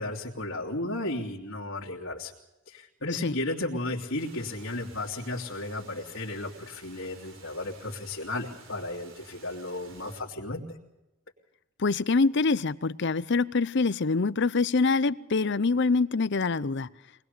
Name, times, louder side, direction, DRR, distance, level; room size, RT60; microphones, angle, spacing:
voice 1, 0.0-2.3 2.7-10.8, left 2 dB, 85° left, 2.8 m, -34 dB
Water, 4.1-10.2, right 4 dB, 70° right, 4.3 m, -53 dB
voice 2, 11.8-16.9, left 4 dB, 60° left, 0.7 m, -25 dB
24.0 x 20.0 x 6.8 m
head